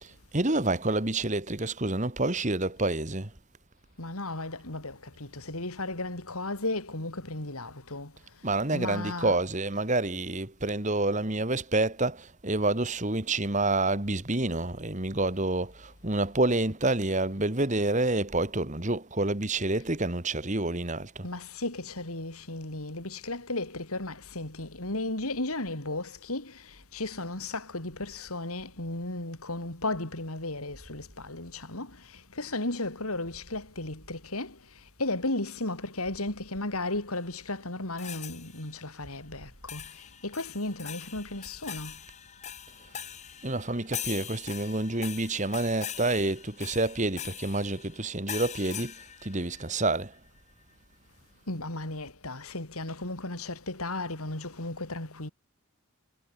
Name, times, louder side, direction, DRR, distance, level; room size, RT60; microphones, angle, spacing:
voice 1, 0.0-3.3 8.4-21.3 43.4-48.9 49.2-50.1, right 2 dB, 35° right, 1.9 m, -28 dB
voice 2, 4.0-8.1 8.7-9.4 21.2-34.6 35.0-42.0 51.5-55.3, left 2 dB, 80° left, 4.6 m, -35 dB
sound 1, 38.0-38.8 39.7-50.0, left 9 dB, 30° left, 1.5 m, -42 dB
head